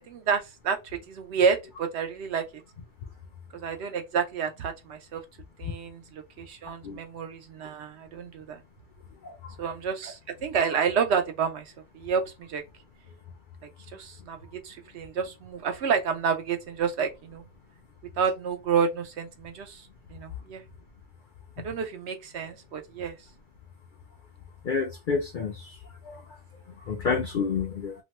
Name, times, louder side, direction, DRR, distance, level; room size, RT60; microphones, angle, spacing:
voice 1, 0.1-0.8 1.1-2.4 3.5-5.2 5.6-8.6 9.6-12.6 13.9-14.4 14.6-17.4 18.2-19.8 20.1-20.6 21.6-23.2, right 6 dB, 65° right, 0.8 m, -29 dB
voice 2, 24.6-25.7 26.1-26.2 26.9-27.9, left 5 dB, 60° left, 0.5 m, -29 dB
2.8 x 2.1 x 2.9 m
omnidirectional pair, 1.3 m